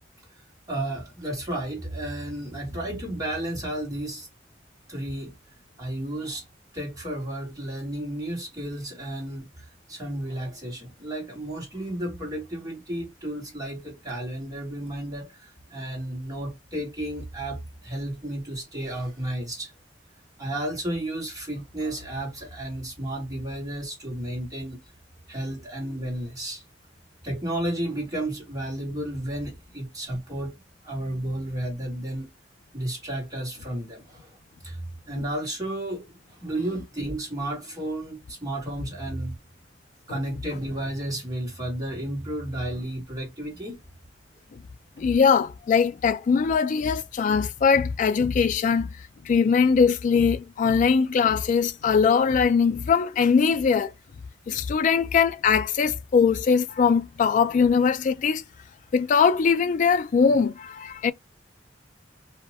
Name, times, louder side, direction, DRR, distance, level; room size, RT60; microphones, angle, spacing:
voice 1, 0.7-4.3 4.9-5.3 5.8-6.4 6.7-19.7 20.4-24.8 25.3-26.6 27.2-30.5 30.8-32.3 32.7-34.4 34.6-39.3 40.1-43.8, right 1 dB, 20° right, 1.4 m, -32 dB
voice 2, 45.0-49.0 49.2-53.9 54.5-58.4 58.9-61.1, left 6 dB, 45° left, 0.3 m, -21 dB
2.7 x 2.1 x 2.9 m
head